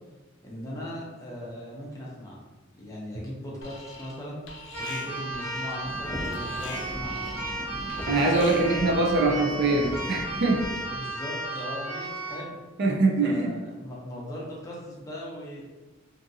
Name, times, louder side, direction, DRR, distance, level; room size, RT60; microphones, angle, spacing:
voice 1, 0.4-2.4 2.7-4.4 4.8-7.3 8.4-8.6 10.9-12.6 13.2-15.6, equal, 15° left, -5 dB, 0.6 m, -39 dB
Alarm, 3.6-4.2 4.5-8.9, left 2 dB, 70° left, 0.5 m, -43 dB
Keyboard (musical), 4.7-12.5, right 2 dB, 35° right, 0.9 m, -34 dB
sound 1, 5.8-10.8, equal, 80° right, 0.8 m, -39 dB
voice 2, 8.1-10.7 12.8-13.5, right 2 dB, 55° right, 1 dB, 0.4 m, -23 dB
2.6 x 2.5 x 2.6 m, 1.2 s
head